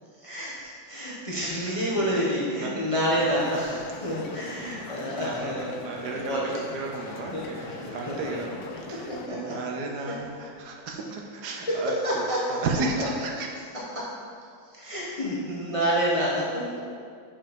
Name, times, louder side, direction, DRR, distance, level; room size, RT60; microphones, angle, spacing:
voice 1, 0.2-8.4 8.9-9.6 10.0-10.1 11.7-13.1 13.7-14.1 14.6-16.8, equal, 25° left, -6 dB, 0.7 m, -29 dB
voice 2, 1.6-2.2 2.5-2.7 5.1-13.7, right 3 dB, 70° right, 1 dB, 1.2 m, -34 dB
sound 1, 3.1-9.3, left 5 dB, 70° left, 1.0 m, -42 dB
5.7 x 5.1 x 5.2 m, 2.2 s
omnidirectional pair, 2.0 m